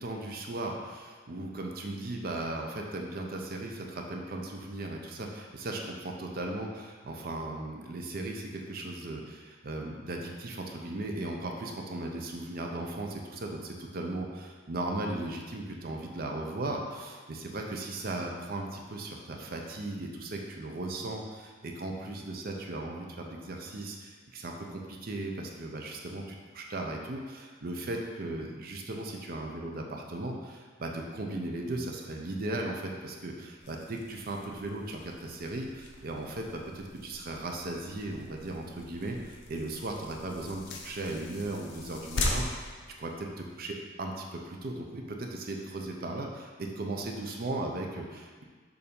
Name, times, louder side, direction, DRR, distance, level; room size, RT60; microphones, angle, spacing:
voice 1, 0.0-42.7 43.0-48.4, right 2 dB, 50° right, 1 dB, 0.6 m, -37 dB
sound 1, 33.6-43.7, left 2 dB, 60° left, 0.7 m, -40 dB
6.9 x 2.6 x 5.2 m, 1.5 s
head